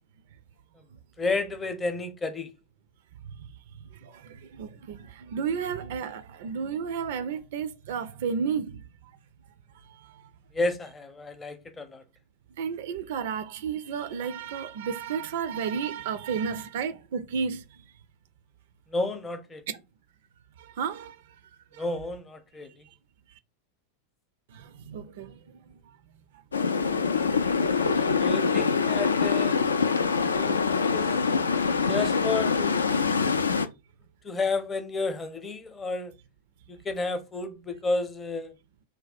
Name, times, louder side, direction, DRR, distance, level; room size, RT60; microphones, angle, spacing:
voice 1, 1.2-2.5 10.5-12.0 18.9-19.6 21.8-22.7 28.2-29.6 30.3-31.1 31.5-32.8 34.2-36.1 36.7-38.5, left 3 dB, 15° left, 0.6 m, -31 dB
voice 2, 4.0-8.8 12.6-17.6 20.8-21.1 24.5-25.3, right 6 dB, 55° right, 0.4 m, -32 dB
sound 1, 26.5-33.7, left 5 dB, 75° left, 0.3 m, -24 dB
3.3 x 2.2 x 4.1 m
figure-of-eight pair, 90°, 0 cm